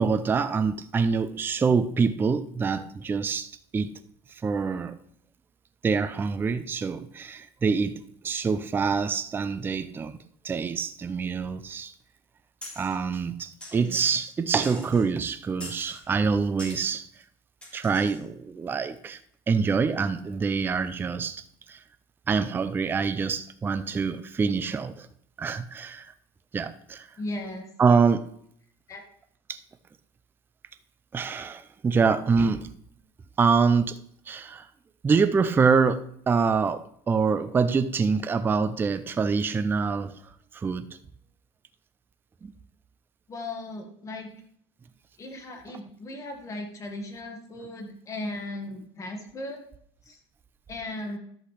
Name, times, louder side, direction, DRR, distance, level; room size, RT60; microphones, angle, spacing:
voice 1, 0.0-4.0 4.4-5.0 5.8-10.2 10.4-11.9 12.8-17.1 17.7-19.2 19.5-21.8 22.3-25.1 25.4-26.1 26.5-27.1 27.8-28.3 29.5-29.6 31.1-32.7 33.4-34.0 34.3-34.7 35.0-40.2 40.5-40.9 42.4-42.5, right 5 dB, 15° right, 0.5 m, -25 dB
sound 1, 12.6-13.0 13.6-14.3 14.6-15.1 15.6-16.0 16.6-16.9 17.6-18.2, left 1 dB, 10° left, 3.4 m, -43 dB
voice 2, 27.2-27.7 28.9-29.0 43.3-44.3 45.2-49.6 50.1-50.2 50.7-51.2, left 2 dB, 25° left, 1.7 m, -37 dB
11.0 x 8.0 x 3.3 m
supercardioid pair, 135°, 13 cm